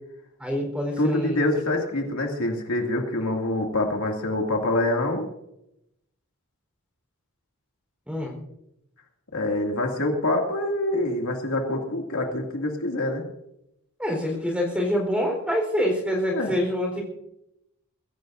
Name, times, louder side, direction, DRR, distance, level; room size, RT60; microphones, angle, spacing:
voice 1, 0.4-1.4 8.1-8.3 14.0-17.0, equal, 5° right, 1 dB, 4.1 m, -26 dB
voice 2, 1.0-5.2 9.3-13.2 16.3-16.5, left 1 dB, 80° left, 1 dB, 2.4 m, -25 dB
22.5 x 15.5 x 2.6 m, 0.83 s
head